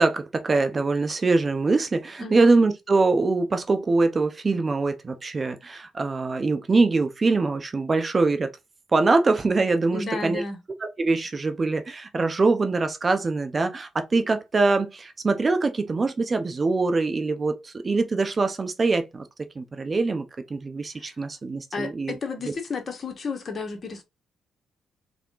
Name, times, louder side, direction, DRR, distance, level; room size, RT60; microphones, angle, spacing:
voice 1, 0.0-8.5 8.9-10.4 10.8-19.2 19.6-22.1, right 3 dB, 30° right, 0.8 m, -23 dB
voice 2, 2.2-2.5 9.9-10.6 20.9-21.2 21.7-24.0, left 4 dB, 40° left, 1.3 m, -32 dB
3.6 x 3.5 x 3.8 m
cardioid pair, 90°, 0 cm